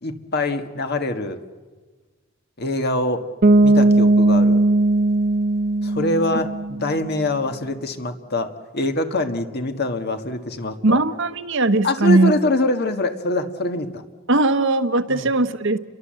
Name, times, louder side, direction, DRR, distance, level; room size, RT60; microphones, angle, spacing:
voice 1, 0.0-1.4 2.6-3.3 3.6-4.6 5.8-11.0 11.8-14.0 15.1-15.3, left 2 dB, 55° left, 7 dB, 1.7 m, -24 dB
Bass guitar, 3.4-7.1, right 2 dB, 45° right, 0.8 m, -17 dB
voice 2, 10.8-12.3 14.3-15.8, right 2 dB, 65° right, 9 dB, 1.2 m, -19 dB
30.0 x 22.5 x 7.7 m, 1.4 s
head